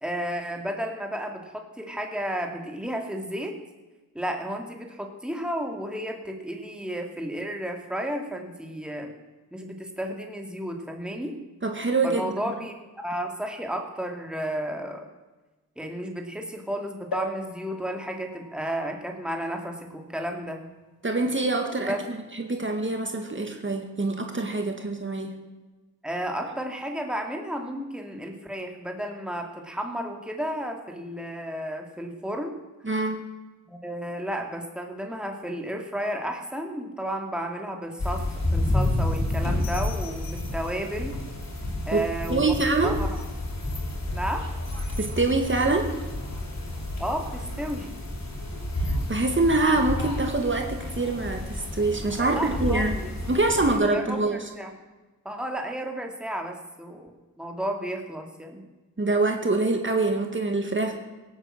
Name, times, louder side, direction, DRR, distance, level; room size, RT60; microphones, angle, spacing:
voice 1, 0.0-3.6 4.1-9.1 9.5-11.4 12.0-15.1 15.8-20.6 21.8-22.0 26.0-32.6 33.7-41.2 41.9-42.5 42.8-43.2 44.1-44.5 47.0-47.9 52.2-53.2 53.6-54.7 55.2-57.1 57.4-58.6, equal, 5° right, 3 dB, 2.4 m, -32 dB
voice 2, 11.6-12.5 21.0-25.3 32.8-33.2 41.9-42.0 42.3-43.0 45.0-45.9 48.8-53.0 53.3-54.5 59.0-60.9, right 2 dB, 35° right, 4 dB, 2.2 m, -25 dB
sound 1, 17.1-20.8 21.4-21.5 21.7-21.8, left 1 dB, 80° left, 3.2 m, -40 dB
sound 2, 38.0-53.8, left 1 dB, 50° left, 4.9 m, -30 dB
17.0 x 9.2 x 7.6 m, 1.2 s
cardioid pair, 55°, 35 cm